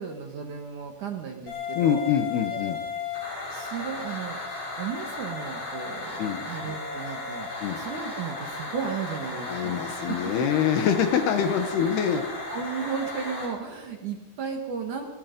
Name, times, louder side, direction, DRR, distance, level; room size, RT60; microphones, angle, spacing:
voice 1, 0.0-2.0 2.5-2.6 3.5-4.4 4.8-7.5 7.8-10.3 12.1-15.1, right 6 dB, 55° right, 3 dB, 2.4 m, -34 dB
sound 1, 1.5-13.5, left 3 dB, 50° left, 7.4 m, -35 dB
voice 2, 1.8-2.8 6.2-6.5 7.6-7.8 9.5-12.2, left 8 dB, 70° left, 8 dB, 2.9 m, -25 dB
24.0 x 21.0 x 5.3 m, 1.1 s
omnidirectional pair, 5.3 m